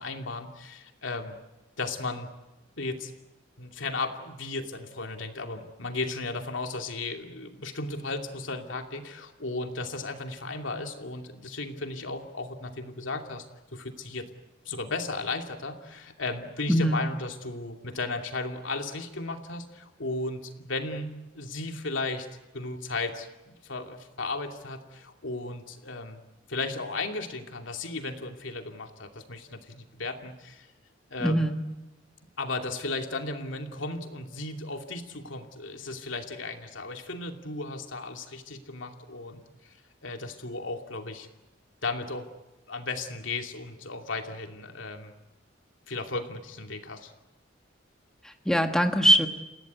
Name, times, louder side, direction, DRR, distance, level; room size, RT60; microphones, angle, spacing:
voice 1, 0.0-1.4 1.8-2.3 2.8-3.1 3.6-13.4 13.7-14.3 14.6-21.1 21.3-22.3 22.5-26.2 26.5-30.7 31.1-31.5 32.4-39.8 40.0-41.3 41.8-42.3 42.7-45.1 45.9-47.1, left 3 dB, 85° left, 4 dB, 2.7 m, -35 dB
voice 2, 16.7-17.0 31.2-31.6 48.2-49.3, equal, 5° left, 5 dB, 1.4 m, -22 dB
30.0 x 16.5 x 9.4 m, 1.0 s
head